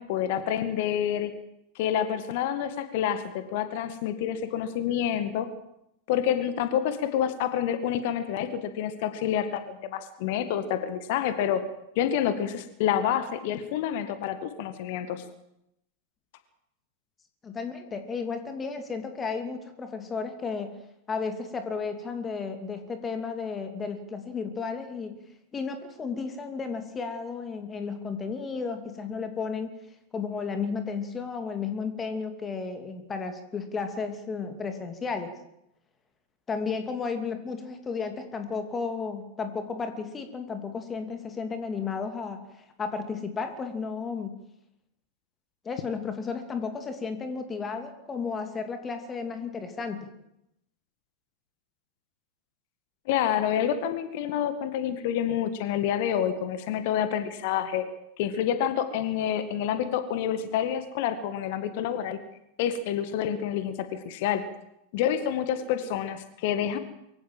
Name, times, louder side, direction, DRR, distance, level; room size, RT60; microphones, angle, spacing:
voice 1, 0.1-1.3 1.8-5.5 6.1-11.6 12.0-15.2 53.1-57.9 58.2-62.2 62.6-64.4 64.9-66.8, left 9 dB, 50° left, 10 dB, 1.9 m, -28 dB
voice 2, 17.4-20.8 21.1-25.2 25.5-29.7 30.1-35.3 36.5-44.4 45.6-50.1, left 5 dB, 20° left, 7 dB, 2.8 m, -33 dB
23.5 x 16.0 x 7.8 m, 0.81 s
figure-of-eight pair, 90°, 0 cm